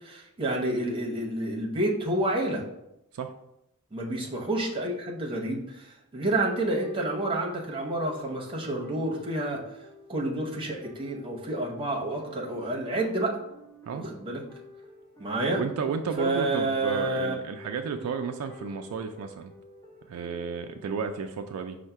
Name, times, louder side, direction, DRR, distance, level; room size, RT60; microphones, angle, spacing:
voice 1, 0.0-2.6 3.9-9.6 10.1-13.4 14.0-14.4 15.2-15.6 16.2-17.3 18.0-18.1, right 2 dB, 25° right, -1 dB, 0.9 m, -29 dB
sound 1, 6.8-21.1, equal, 15° left, 0.5 m, -50 dB
voice 2, 15.5-19.5 20.1-21.8, right 5 dB, 70° right, 6 dB, 0.3 m, -33 dB
5.4 x 2.1 x 4.5 m, 0.84 s
head